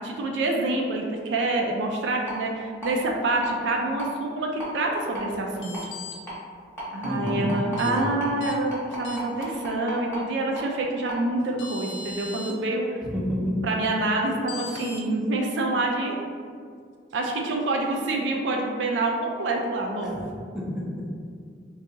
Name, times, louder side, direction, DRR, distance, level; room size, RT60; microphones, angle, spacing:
voice 1, 0.0-5.8 6.9-13.0 13.6-16.2 17.1-20.2, right 2 dB, 70° right, 1 dB, 0.4 m, -27 dB
sound 1, 2.3-2.4 2.8-2.9 3.4-3.5 4.0-4.1 4.6-4.7 5.1-5.2 5.7-5.8 6.3-6.4 6.8-10.2 10.6-10.7 11.1-11.2, equal, 10° left, 0.9 m, -34 dB
sound 2, 5.6-6.2 7.8-7.9 8.4-8.5 9.0-9.5 11.1-11.2 11.6-12.5 14.5-15.0, left 3 dB, 85° left, 0.5 m, -38 dB
voice 2, 7.0-7.5 7.8-8.1 13.0-13.7 20.0-20.1 20.5-21.0, equal, 5° right, -5 dB, 0.5 m, -29 dB
2.7 x 2.3 x 3.8 m, 2.1 s
head